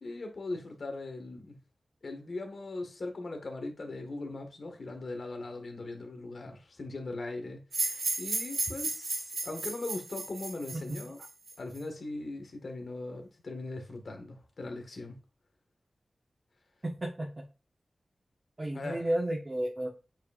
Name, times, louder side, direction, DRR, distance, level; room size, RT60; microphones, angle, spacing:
voice 1, 0.0-1.6 2.0-11.2 11.6-15.2 18.7-19.1, left 2 dB, 65° left, 1.7 m, -40 dB
sound 1, 7.7-11.8, right 3 dB, 85° right, 2.1 m, -34 dB
voice 2, 16.8-17.4 18.6-19.9, right 1 dB, 30° right, 1.3 m, -32 dB
8.2 x 4.6 x 2.5 m
wide cardioid pair, 90°, 0 cm